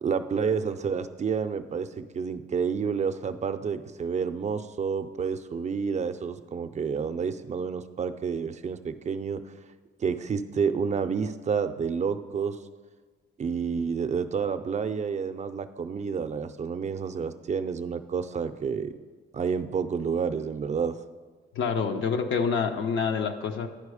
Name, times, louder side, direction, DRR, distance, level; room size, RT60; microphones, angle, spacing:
voice 1, 0.0-9.4 10.0-12.6 13.4-18.9 19.3-21.0, right 6 dB, 35° right, 9 dB, 0.4 m, -29 dB
voice 2, 21.5-23.7, left 6 dB, 75° left, 5 dB, 0.7 m, -27 dB
10.5 x 4.6 x 4.9 m, 1.5 s
cardioid pair, 90°, 20 cm